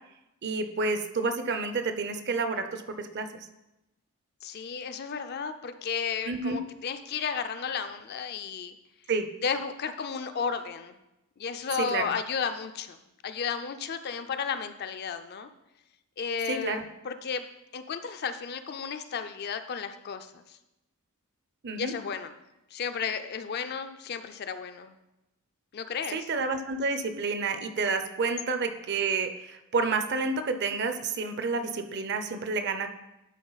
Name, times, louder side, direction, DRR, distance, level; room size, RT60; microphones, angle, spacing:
voice 1, 0.4-3.3 6.3-6.6 9.1-9.3 11.8-12.0 16.5-16.8 21.6-21.9 26.1-32.9, right 4 dB, 50° right, 8 dB, 0.6 m, -29 dB
voice 2, 4.4-8.8 9.4-11.0 11.4-15.5 16.2-16.8 17.0-17.5 17.7-20.6 21.8-22.3 22.7-25.0 25.7-26.2, left 6 dB, 45° left, 9 dB, 0.4 m, -33 dB
11.0 x 4.3 x 4.0 m, 0.94 s
head